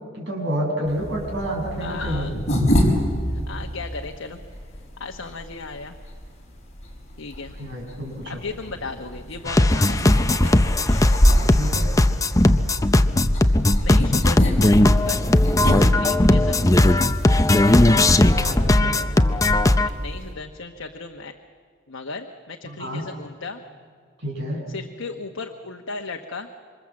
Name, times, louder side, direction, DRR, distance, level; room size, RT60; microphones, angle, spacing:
voice 1, 0.1-2.3 7.6-8.4 11.4-11.9 16.0-16.4 18.4-19.0 22.6-23.0 24.2-24.6, right 1 dB, 60° right, -1 dB, 7.4 m, -29 dB
sound 1, 0.8-20.3, equal, 35° left, 5.7 m, -28 dB
voice 2, 1.8-2.3 3.3-4.4 5.0-6.0 7.2-7.5 8.2-10.8 13.8-15.2 15.6-17.0 17.5-17.8 19.8-21.3 21.9-23.6 24.7-26.5, left 3 dB, 75° left, 3 dB, 1.1 m, -36 dB
sound 2, 9.5-19.9, left 1 dB, 15° left, 0.7 m, -17 dB
27.0 x 25.0 x 7.6 m, 2.1 s
head